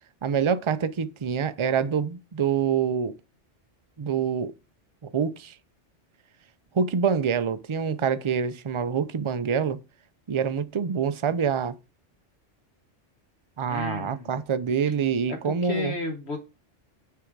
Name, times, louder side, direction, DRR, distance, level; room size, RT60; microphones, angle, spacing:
voice 1, 0.2-3.1 4.0-4.5 5.0-5.5 6.7-9.8 10.3-11.8 13.6-15.9, right 7 dB, 40° right, 0.5 m, -26 dB
voice 2, 13.7-14.4 15.3-16.4, left 3 dB, 65° left, 1.5 m, -32 dB
10.5 x 3.8 x 4.6 m
omnidirectional pair, 1.2 m